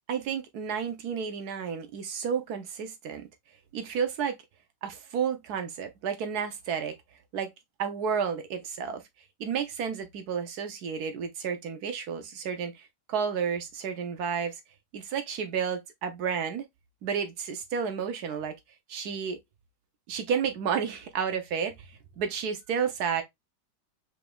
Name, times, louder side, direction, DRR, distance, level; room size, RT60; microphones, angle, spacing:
voice 1, 0.1-3.3 3.7-4.4 4.8-6.9 7.3-7.5 7.8-9.0 9.4-14.6 14.9-16.7 17.0-18.5 18.9-19.4 20.1-23.2, right 7 dB, 70° right, 1.1 m, -31 dB
4.9 x 3.5 x 2.2 m
omnidirectional pair, 1.9 m